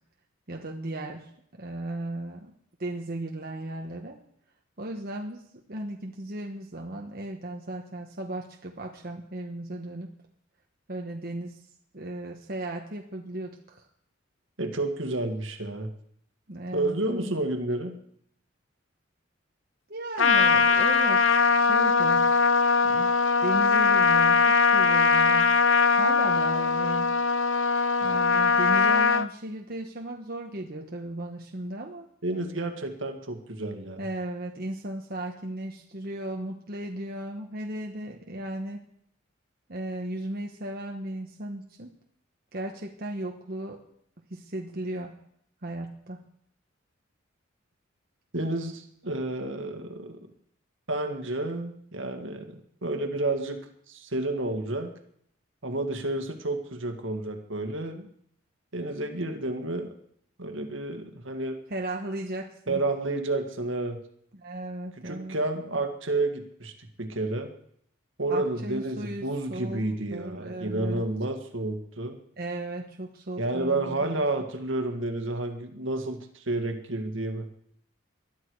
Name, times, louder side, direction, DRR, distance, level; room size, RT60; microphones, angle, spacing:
voice 1, 0.5-2.5 2.8-4.2 4.8-5.4 5.7-10.1 10.9-11.6 11.9-13.9 16.5-17.4 19.9-22.3 22.8-23.1 23.4-25.5 26.0-27.1 28.0-32.1 34.0-38.9 39.7-41.9 42.5-43.8 44.3-45.1 45.6-46.2 61.7-62.8 64.3-65.4 68.3-69.8 70.1-71.1 72.4-74.3, right 1 dB, 50° right, 1 dB, 1.3 m, -36 dB
voice 2, 14.6-15.9 16.7-18.0 32.2-34.0 48.3-50.2 50.9-53.6 53.9-54.9 55.6-58.1 58.7-59.9 60.4-61.6 62.7-64.0 65.0-67.5 68.2-72.2 73.4-77.5, right 2 dB, 70° right, 5 dB, 2.0 m, -30 dB
Trumpet, 20.2-29.3, left 4 dB, 70° left, 0.8 m, -21 dB
21.0 x 12.5 x 4.8 m, 0.68 s
head